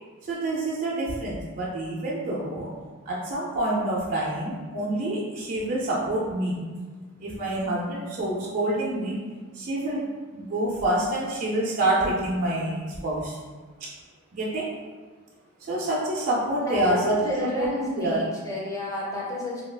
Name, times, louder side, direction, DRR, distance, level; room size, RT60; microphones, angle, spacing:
voice 1, 0.2-2.7 3.1-6.6 7.2-9.2 9.5-13.4 14.3-14.7 15.7-18.3, right 1 dB, 40° right, -6 dB, 0.4 m, -27 dB
voice 2, 16.6-19.6, left 1 dB, 15° left, -6 dB, 0.7 m, -31 dB
2.3 x 2.3 x 3.3 m, 1.4 s
head